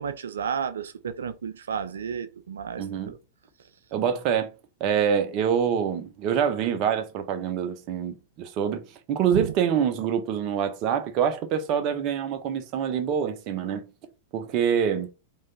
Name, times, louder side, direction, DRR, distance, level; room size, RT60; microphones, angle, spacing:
voice 1, 0.0-3.2 9.3-9.5, right 7 dB, 85° right, 0.6 m, -32 dB
voice 2, 2.8-3.1 3.9-4.5 4.8-13.8 14.3-15.1, right 8 dB, 45° right, 1.0 m, -26 dB
3.7 x 3.2 x 4.0 m
hypercardioid pair, 110°, 0 cm